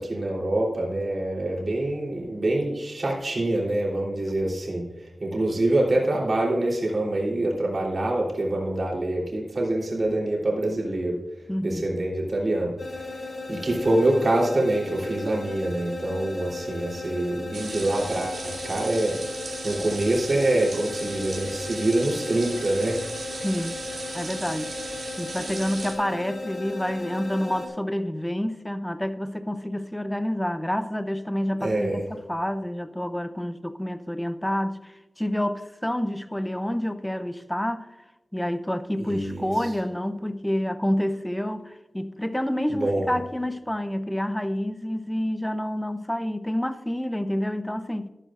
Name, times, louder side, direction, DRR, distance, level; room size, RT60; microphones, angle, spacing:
voice 1, 0.0-11.2 11.6-13.1 13.5-19.2 19.6-23.0 31.6-32.0 39.0-39.5 42.7-43.1, right 1 dB, 55° right, 3.4 m, -25 dB
voice 2, 11.5-11.9 23.4-23.8 24.1-24.7 25.2-37.9 38.3-48.1, equal, 10° left, 0.7 m, -28 dB
sound 1, 12.8-27.7, left 3 dB, 65° left, 2.7 m, -36 dB
sound 2, 17.5-25.9, right 3 dB, 90° right, 2.7 m, -37 dB
13.0 x 12.0 x 2.5 m
wide cardioid pair, 75°, 0 cm